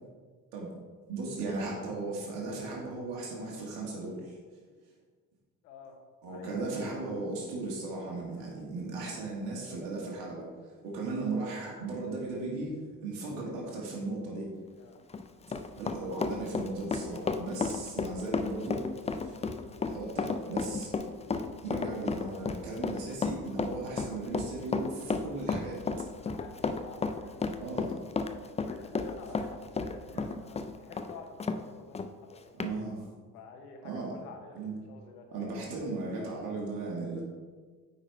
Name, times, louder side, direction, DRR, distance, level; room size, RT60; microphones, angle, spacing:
voice 1, 1.1-4.4 6.2-14.5 15.8-18.9 19.1-19.3 19.9-20.9 21.6-25.9 27.6-28.0 30.1-30.3 32.6-33.1 33.8-34.1 34.5-34.7 35.3-37.2, right 3 dB, 65° right, -3 dB, 1.6 m, -37 dB
voice 2, 5.6-6.0 6.3-6.5 8.3-8.5 10.7-10.8 14.8-15.0 21.7-22.1 26.2-27.8 28.6-32.7 33.3-35.5 37.1-37.2, left 4 dB, 75° left, 3 dB, 1.1 m, -51 dB
Run, 14.9-31.6 31.9-32.1 32.6-32.7, left 4 dB, 15° left, 0.5 m, -33 dB
8.8 x 4.1 x 4.4 m, 1.5 s
figure-of-eight pair, 50°, 46 cm